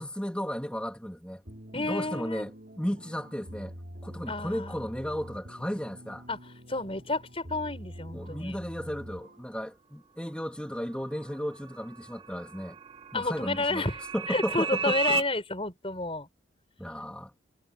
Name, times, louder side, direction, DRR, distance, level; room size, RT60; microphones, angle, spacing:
voice 1, 0.0-1.4 1.7-3.7 4.0-6.2 8.1-12.8 13.1-13.9 14.1-15.2 16.8-17.3, equal, 5° left, 3.2 m, -34 dB
sound 1, 1.5-9.6, equal, 50° right, 4.6 m, -46 dB
voice 2, 1.7-2.5 4.3-4.9 6.3-6.4 6.7-8.6 13.1-16.3, left 2 dB, 30° left, 5.5 m, -31 dB
sound 2, 10.9-15.2, right 5 dB, 30° right, 3.0 m, -34 dB
head